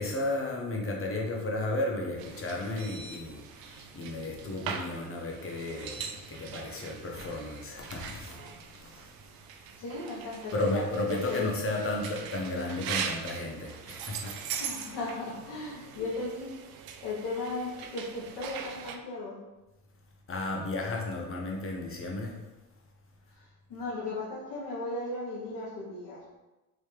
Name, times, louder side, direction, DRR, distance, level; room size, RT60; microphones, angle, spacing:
voice 1, 0.0-9.3 10.5-14.5 20.3-22.4, left 2 dB, 30° left, 0 dB, 0.9 m, -34 dB
sound 1, 2.2-19.0, right 7 dB, 55° right, 0.5 m, -41 dB
voice 2, 9.8-11.5 14.6-16.5 17.0-19.4 23.3-26.2, left 3 dB, 55° left, -7 dB, 1.3 m, -36 dB
3.2 x 2.9 x 3.2 m, 1.1 s
hypercardioid pair, 70°, 46 cm